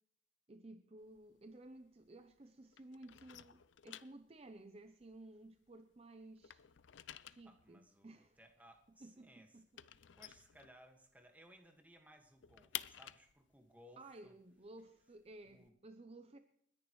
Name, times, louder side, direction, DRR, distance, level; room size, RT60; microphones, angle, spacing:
voice 1, 0.5-6.6 7.2-8.4 9.0-9.6 14.0-16.4, right 2 dB, 35° right, 0.6 m, -56 dB
sound 1, 1.0-2.4 2.7-5.9 6.2-11.2 11.6-11.7 12.0-15.7, left 12 dB, 85° left, 0.5 m, -52 dB
voice 2, 7.4-9.6 9.9-14.4 15.4-15.7, equal, 10° right, 1.7 m, -63 dB
29.5 x 10.5 x 3.2 m
head